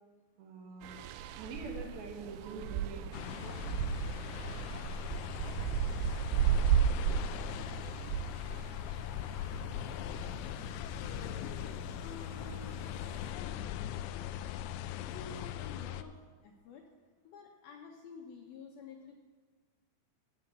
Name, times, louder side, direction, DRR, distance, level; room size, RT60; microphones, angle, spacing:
voice 1, 0.4-1.0 1.4-3.6, right 3 dB, 65° right, 1 dB, 3.1 m, -45 dB
sound 1, 0.8-13.3, right 8 dB, 80° right, 2.4 m, -35 dB
sound 2, 3.1-16.0, left 11 dB, 90° left, 3.0 m, -40 dB
voice 2, 11.9-12.8 13.3-14.7 15.0-16.1 16.4-16.8 17.2-19.2, left 5 dB, 75° left, 1 dB, 2.3 m, -50 dB
15.5 x 5.8 x 8.6 m, 1.4 s
omnidirectional pair, 5.2 m